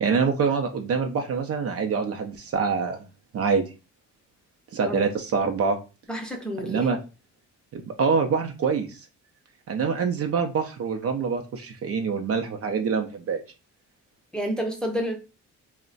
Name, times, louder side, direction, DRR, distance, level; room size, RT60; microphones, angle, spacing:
voice 1, 0.0-3.0 3.3-3.6 4.7-5.8 6.6-7.0 7.7-9.0 9.7-13.4, right 5 dB, 50° right, 0.5 m, -25 dB
voice 2, 6.1-6.9 14.3-15.2, equal, 5° left, 0.6 m, -29 dB
2.4 x 2.1 x 3.8 m
cardioid pair, 90°, 30 cm